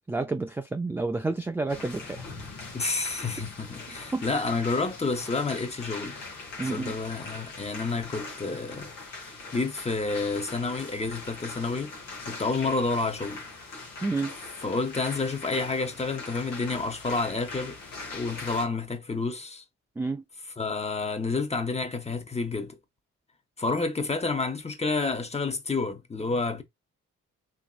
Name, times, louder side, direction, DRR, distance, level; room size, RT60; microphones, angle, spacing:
voice 1, 0.1-2.3 4.1-4.2 6.6-7.0 14.0-14.3 20.0-20.2, right 3 dB, 5° right, 0.3 m, -30 dB
sound 1, 1.7-18.7, left 3 dB, 90° left, 0.9 m, -41 dB
voice 2, 2.7-6.2 6.6-8.9 9.5-11.9 12.2-13.4 14.6-17.8 18.1-19.6 20.6-22.8 23.6-26.6, left 3 dB, 20° left, 0.8 m, -29 dB
2.9 x 2.7 x 2.4 m
supercardioid pair, 50°, 32 cm